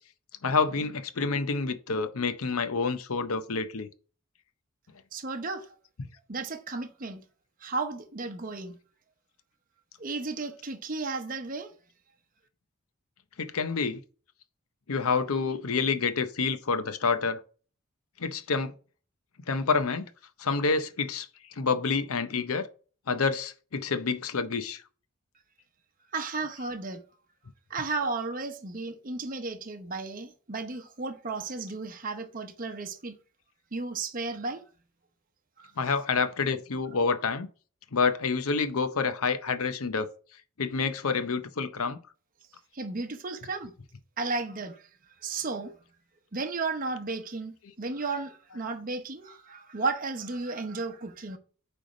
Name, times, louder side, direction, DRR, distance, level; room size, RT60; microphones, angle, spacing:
voice 1, 0.4-3.9 13.4-14.0 14.9-17.4 18.2-18.7 19.5-20.1 20.4-21.3 21.6-22.7 23.1-24.8 35.8-37.5 37.9-40.1 40.6-42.0, left 4 dB, 85° left, 0.7 m, -28 dB
voice 2, 5.1-5.7 6.3-7.2 7.6-8.8 10.0-11.7 26.1-27.0 27.7-33.1 33.7-34.6 35.6-35.7 42.7-43.7 44.2-44.8 45.2-45.7 46.3-51.4, right 3 dB, 40° right, 0.8 m, -34 dB
9.0 x 3.4 x 5.1 m
head